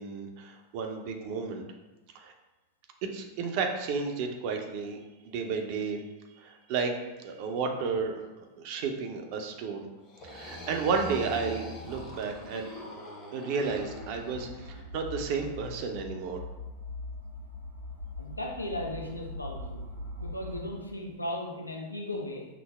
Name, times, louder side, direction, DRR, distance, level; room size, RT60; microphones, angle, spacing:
voice 1, 0.0-1.6 2.1-2.3 3.1-5.0 5.2-6.0 6.4-6.9 7.2-8.2 8.6-9.9 10.2-12.7 13.3-16.4, right 5 dB, 45° right, 3 dB, 0.5 m, -32 dB
sound 1, 10.0-14.8, left 1 dB, 40° left, 1.0 m, -42 dB
sound 2, 13.6-20.7, left 2 dB, 75° right, 0.8 m, -42 dB
voice 2, 18.2-19.9 20.2-22.5, left 1 dB, 85° left, -1 dB, 0.6 m, -36 dB
5.9 x 2.0 x 3.3 m, 1.1 s
figure-of-eight pair, 90°, 0 cm